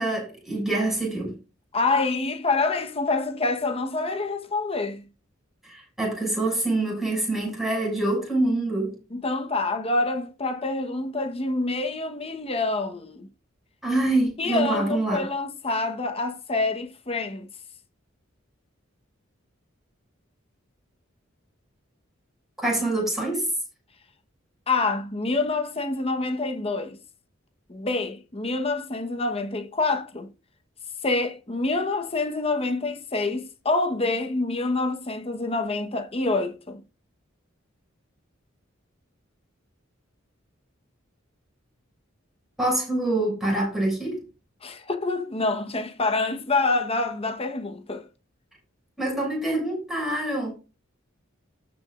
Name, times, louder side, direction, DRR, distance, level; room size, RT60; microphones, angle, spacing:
voice 1, 0.0-1.3 5.6-8.9 13.8-15.3 22.6-23.5 42.6-44.2 49.0-50.5, right 2 dB, ahead, 6.5 m, -25 dB
voice 2, 1.7-5.1 9.1-13.3 14.4-17.5 24.7-27.0 27.7-30.3 31.0-36.8 44.6-48.1, left 3 dB, 30° left, 1.1 m, -26 dB
18.5 x 6.2 x 2.5 m
head